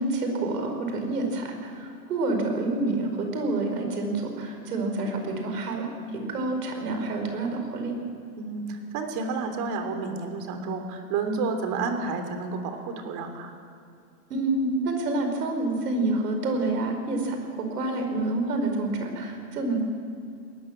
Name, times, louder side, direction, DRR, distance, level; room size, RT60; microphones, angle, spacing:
voice 1, 0.0-5.9 6.1-7.9 14.3-19.8, right 2 dB, 85° right, 4 dB, 5.2 m, -28 dB
voice 2, 8.4-13.5, right 4 dB, 40° right, 6 dB, 3.4 m, -30 dB
20.5 x 19.5 x 7.4 m, 2.5 s
hypercardioid pair, 140°, 46 cm